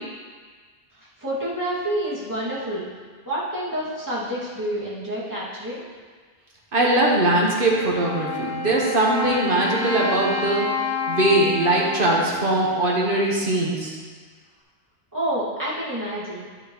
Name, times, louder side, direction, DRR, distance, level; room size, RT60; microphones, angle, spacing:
voice 1, 1.2-2.9 3.3-5.8 15.1-16.5, right 1 dB, 15° right, -10 dB, 2.4 m, -28 dB
voice 2, 6.7-10.7 11.1-14.0, right 2 dB, 55° right, -3 dB, 1.5 m, -21 dB
Wind instrument woodwind instrument, 7.7-13.4, left 4 dB, 55° left, 2.0 m, -30 dB
10.5 x 6.6 x 3.1 m, 1.5 s
omnidirectional pair, 1.1 m